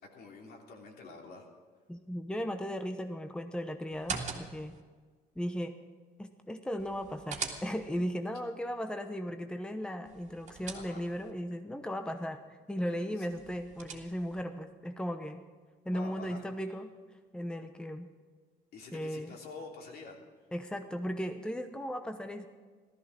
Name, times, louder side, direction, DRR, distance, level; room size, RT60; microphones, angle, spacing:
voice 1, 0.1-1.5 10.7-11.1 12.9-13.3 15.9-16.4 18.7-20.2, left 3 dB, 65° left, 0 dB, 3.2 m, -48 dB
voice 2, 1.9-4.7 5.4-5.7 6.2-15.4 15.8-16.9 17.3-18.1 18.9-19.3 20.5-22.5, equal, 5° left, 7 dB, 0.8 m, -36 dB
sound 1, 3.9-4.8 6.8-8.1 10.1-11.3 13.3-14.4, right 5 dB, 45° right, 2.2 m, -42 dB
15.5 x 13.5 x 6.3 m, 1.5 s
cardioid pair, 110°, 17 cm